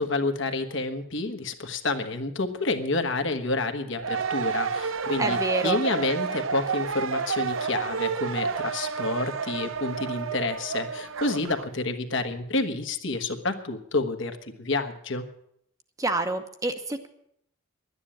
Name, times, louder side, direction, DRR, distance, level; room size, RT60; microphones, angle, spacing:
voice 1, 0.0-5.4 5.6-15.2, left 2 dB, 60° left, 6 dB, 1.4 m, -29 dB
sound 1, 4.0-11.7, right 5 dB, 70° right, 0.7 m, -30 dB
voice 2, 5.2-5.8 16.0-17.1, right 2 dB, 15° right, 7 dB, 0.9 m, -28 dB
11.5 x 9.9 x 8.7 m, 0.72 s
head